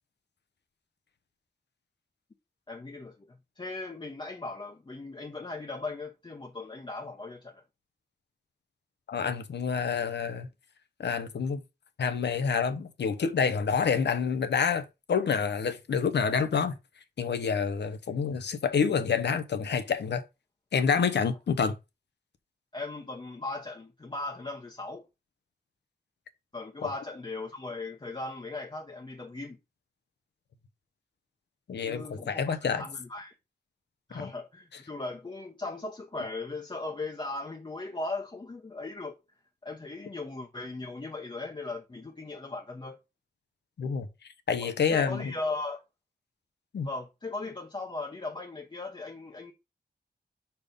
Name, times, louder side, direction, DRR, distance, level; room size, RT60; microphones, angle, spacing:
voice 1, 2.7-7.6 21.2-21.3 22.7-25.0 26.5-29.6 31.9-33.3 34.1-39.2 39.6-43.0 44.6-45.8 46.8-49.5, left 3 dB, 25° left, 0.9 m, -38 dB
voice 2, 9.1-10.5 11.0-11.6 12.0-16.8 17.2-20.2 20.7-21.7 31.7-32.8 34.1-34.3 43.8-44.1 44.5-45.3 46.7-46.9, left 6 dB, 90° left, 0.9 m, -28 dB
5.2 x 4.5 x 5.1 m
wide cardioid pair, 115°, 17 cm